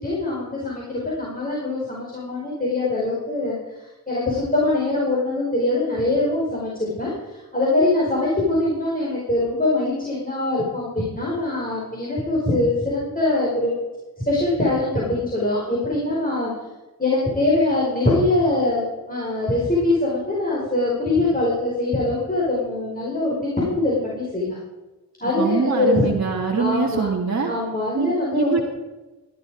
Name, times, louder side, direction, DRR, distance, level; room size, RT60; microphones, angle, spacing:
voice 1, 0.0-13.7 14.2-16.5 17.0-24.6 25.2-26.2 26.6-27.1 27.5-28.6, left 2 dB, 20° left, -6 dB, 5.2 m, -23 dB
voice 2, 25.2-27.5 27.9-28.6, right 5 dB, 45° right, -2 dB, 1.9 m, -24 dB
15.5 x 11.5 x 5.0 m, 1.1 s
cardioid pair, 55°, 38 cm